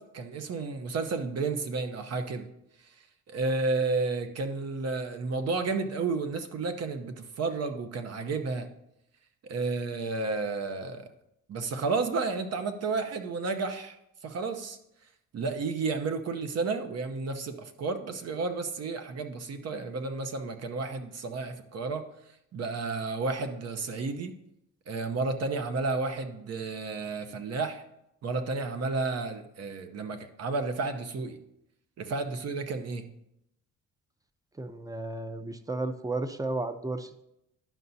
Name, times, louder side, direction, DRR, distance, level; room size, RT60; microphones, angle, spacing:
voice 1, 0.0-2.5 3.3-8.7 9.4-11.1 11.5-14.0 14.2-14.8 15.3-22.0 22.5-24.3 24.9-27.8 28.2-31.4 32.0-33.1, right 3 dB, 55° right, 8 dB, 0.8 m, -32 dB
voice 2, 34.6-37.2, right 2 dB, 10° right, 9 dB, 0.6 m, -33 dB
11.0 x 5.8 x 2.7 m, 0.82 s
cardioid pair, 90°, 30 cm